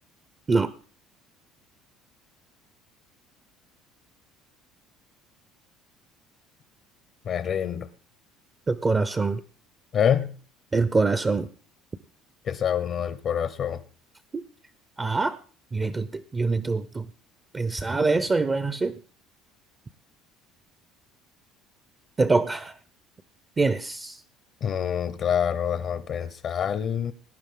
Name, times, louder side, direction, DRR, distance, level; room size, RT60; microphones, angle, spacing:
voice 1, 7.3-7.9 9.9-10.3 12.5-13.8 24.6-27.1, left 8 dB, 50° left, 13 dB, 0.8 m, -26 dB
voice 2, 8.7-9.4 10.7-11.5 14.3-14.4 15.0-15.4 15.7-17.1 17.5-19.0 22.2-22.7 23.6-24.2, right 3 dB, 20° right, 13 dB, 0.6 m, -24 dB
18.0 x 9.8 x 3.7 m, 0.40 s
cardioid pair, 120°, 0 cm